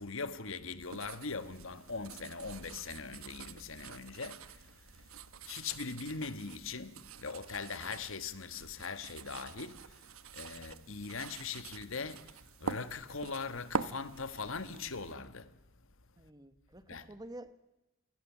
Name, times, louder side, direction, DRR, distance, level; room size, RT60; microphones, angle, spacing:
voice 1, 0.0-5.1 5.4-10.1 10.3-15.5 16.9-17.1, left 4 dB, 70° left, 1.4 m, -41 dB
sound 1, 0.8-15.1, right 4 dB, 85° right, 1.1 m, -45 dB
voice 2, 16.2-17.5, right 1 dB, 20° right, 1.3 m, -49 dB
28.0 x 20.5 x 7.4 m
head